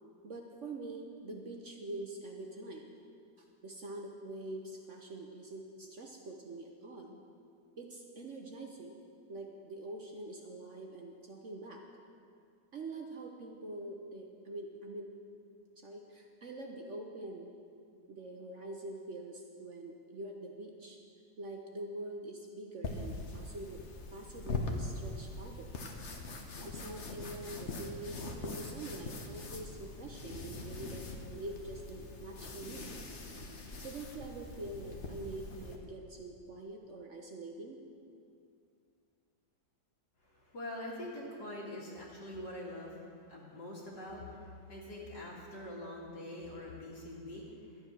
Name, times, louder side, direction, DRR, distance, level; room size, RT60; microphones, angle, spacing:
voice 1, 0.2-2.9 3.6-7.2 7.8-9.0 9.3-11.8 12.7-15.1 15.8-17.5 18.1-21.0 21.4-23.8 24.1-25.7 26.6-32.9 33.8-37.8, right 2 dB, 50° right, 2 dB, 1.0 m, -45 dB
sound 1, 22.8-35.8, left 3 dB, 45° left, 1.1 m, -42 dB
voice 2, 40.2-47.4, left 1 dB, 70° left, -5 dB, 2.5 m, -44 dB
11.5 x 9.5 x 6.1 m, 2.4 s
omnidirectional pair, 2.0 m